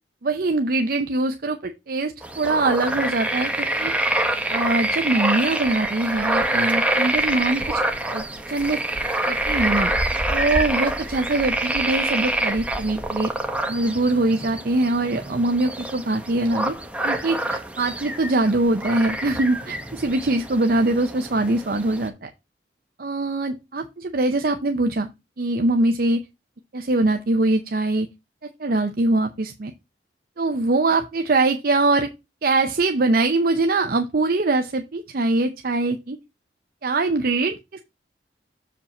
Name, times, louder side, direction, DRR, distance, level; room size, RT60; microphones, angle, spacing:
voice 1, 0.2-3.9 4.5-7.8 8.1-8.8 9.3-9.9 10.3-13.3 13.7-16.7 17.0-22.3 23.0-25.1 25.4-26.2 26.7-28.1 28.6-29.7 30.4-32.1 32.4-36.2 36.8-37.8, right 2 dB, 55° right, 6 dB, 0.6 m, -23 dB
sound 1, 2.2-22.1, right 1 dB, 5° right, 0.8 m, -26 dB
7.1 x 5.1 x 4.2 m, 0.24 s
head